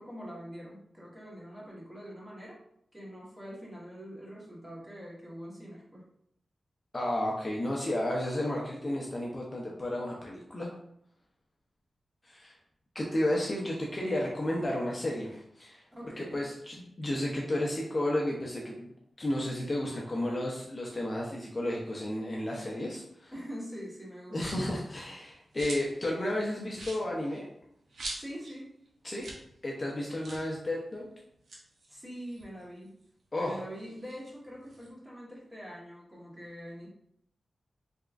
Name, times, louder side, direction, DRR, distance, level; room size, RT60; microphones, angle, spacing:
voice 1, 0.0-2.6 2.9-6.0 15.9-16.4 23.3-24.6 28.1-28.7 31.9-33.0 33.4-36.9, equal, 15° right, -6 dB, 1.2 m, -44 dB
voice 2, 6.9-10.7 12.2-12.6 12.9-15.8 16.2-18.9 19.2-23.3 24.3-27.5 29.0-29.3 29.6-31.1 33.3-33.6, left 1 dB, 25° left, -3 dB, 0.5 m, -32 dB
sound 1, 24.3-24.8 25.2-26.0 26.3-26.4 26.7-28.6 28.9-29.0 29.2-29.5 29.7-29.8 30.2-30.5 31.3-33.0 33.4-34.9, right 2 dB, 90° right, 0.7 m, -44 dB
3.5 x 3.0 x 2.4 m, 0.74 s
wide cardioid pair, 115°, 0 cm